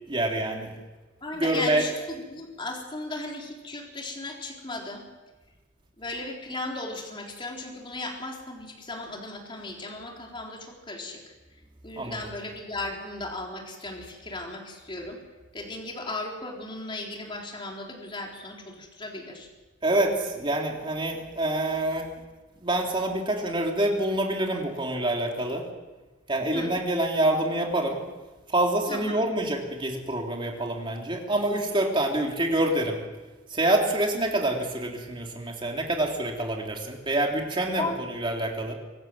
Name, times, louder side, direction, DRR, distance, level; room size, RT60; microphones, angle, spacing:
voice 1, 0.1-0.7 1.3-1.8 11.9-12.2 19.8-22.1 22.6-25.6 26.3-28.0 28.5-33.0 33.5-38.7, right 1 dB, 25° right, 1 dB, 3.4 m, -26 dB
voice 2, 1.2-5.1 6.0-11.2 11.8-15.2 15.5-19.5 26.5-26.7 28.9-29.3 37.8-38.0, left 2 dB, 25° left, 0 dB, 3.9 m, -36 dB
25.5 x 13.5 x 7.8 m, 1.2 s
head